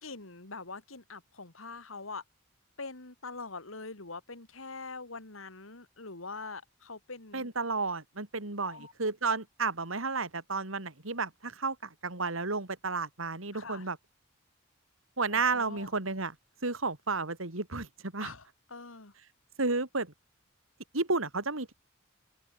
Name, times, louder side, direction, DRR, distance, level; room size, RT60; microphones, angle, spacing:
voice 1, 0.0-2.2 2.8-7.5 8.7-8.9 13.5-13.9 15.3-15.9 18.2-19.1, left 3 dB, 85° left, 3.1 m, -44 dB
voice 2, 7.3-11.8 12.0-14.0 15.2-16.3 16.6-18.3 19.6-20.1 20.9-21.7, right 3 dB, 80° right, 2.9 m, -32 dB
open air
head